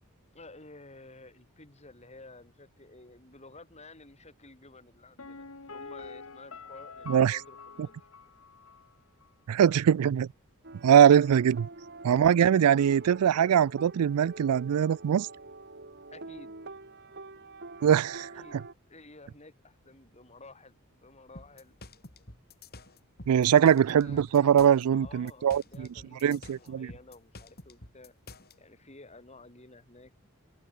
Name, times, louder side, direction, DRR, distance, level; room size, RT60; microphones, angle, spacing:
voice 1, 0.3-8.0 11.1-11.3 16.1-16.6 18.4-21.8 23.6-28.1 28.6-30.3, left 2 dB, 30° left, 4.4 m, -52 dB
Piano, 5.2-8.9 9.2-9.3, left 4 dB, 70° left, 1.7 m, -46 dB
voice 2, 7.1-7.4 9.5-10.3 10.8-11.7 12.0-15.3 17.8-18.3 23.3-25.9 26.2-26.9, right 9 dB, 90° right, 0.4 m, -22 dB
sound 1, 10.6-18.7, right 3 dB, 50° right, 3.2 m, -46 dB
sound 2, 21.4-28.5, left 2 dB, 45° left, 5.7 m, -49 dB
open air
head